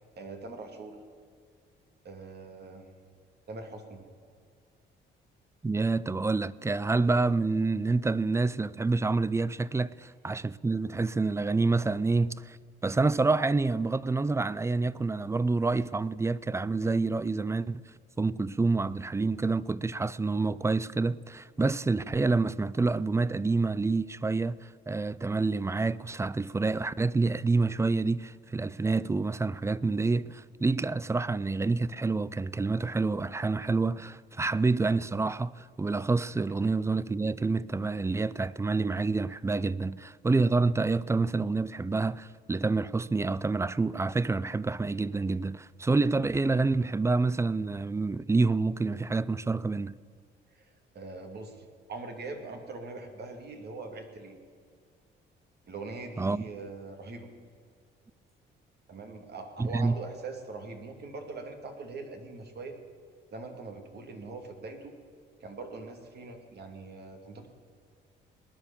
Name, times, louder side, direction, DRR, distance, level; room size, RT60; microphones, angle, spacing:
voice 1, 0.2-1.0 2.0-2.9 3.5-4.0 50.5-54.4 55.7-57.3 58.9-62.8 63.3-65.0 65.4-67.5, right 3 dB, 55° right, 2.4 m, -42 dB
voice 2, 5.6-12.6 12.8-17.8 18.2-49.9 56.2-56.4 59.6-59.9, right 3 dB, 15° right, 0.4 m, -28 dB
19.0 x 10.5 x 7.1 m
cardioid pair, 90°, 20 cm